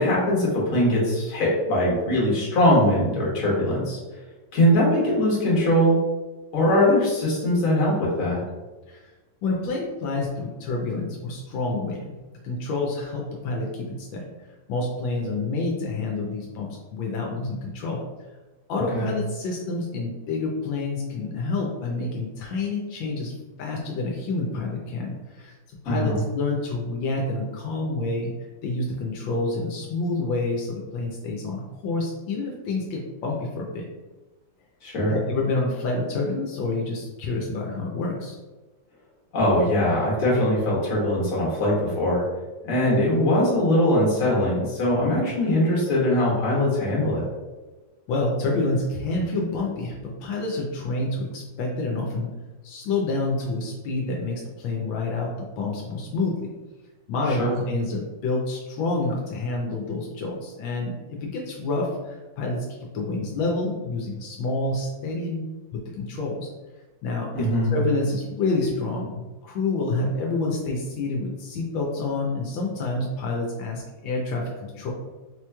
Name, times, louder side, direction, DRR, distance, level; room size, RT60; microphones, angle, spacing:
voice 1, 0.0-4.0 4.5-6.0 6.5-8.4 18.9-19.1 25.8-26.2 34.8-35.1 39.3-42.2 42.6-47.3 57.3-57.6 67.3-67.7, left 1 dB, 50° left, -5 dB, 1.4 m, -21 dB
voice 2, 9.4-12.1 12.4-14.2 14.7-18.0 18.7-23.3 23.6-25.5 25.8-28.3 28.6-33.8 35.1-38.4 48.1-52.3 52.6-56.5 57.1-62.6 62.9-66.5 67.0-74.9, left 3 dB, 80° left, -1 dB, 1.3 m, -28 dB
4.3 x 2.9 x 2.2 m, 1.2 s
omnidirectional pair, 2.1 m